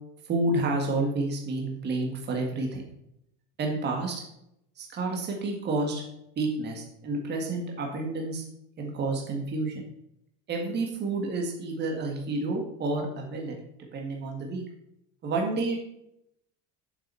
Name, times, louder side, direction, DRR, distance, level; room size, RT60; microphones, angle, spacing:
voice 1, 0.3-2.8 3.6-4.2 4.8-6.0 6.4-8.4 8.8-9.9 10.5-13.6 13.9-14.6 15.2-15.8, right 2 dB, 30° right, 1 dB, 1.9 m, -29 dB
7.9 x 7.2 x 6.9 m, 0.79 s
cardioid pair, 165°, 36 cm